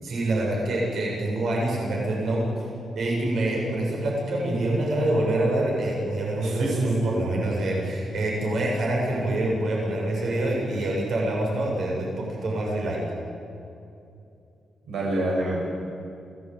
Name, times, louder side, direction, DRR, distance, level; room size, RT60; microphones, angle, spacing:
voice 1, 0.0-2.5 3.0-13.0, right 1 dB, 60° right, -2 dB, 7.5 m, -26 dB
voice 2, 6.4-7.2 14.9-15.6, right 1 dB, 90° right, -2 dB, 7.0 m, -27 dB
27.0 x 18.0 x 9.3 m, 2.6 s
wide cardioid pair, 160°, 0 cm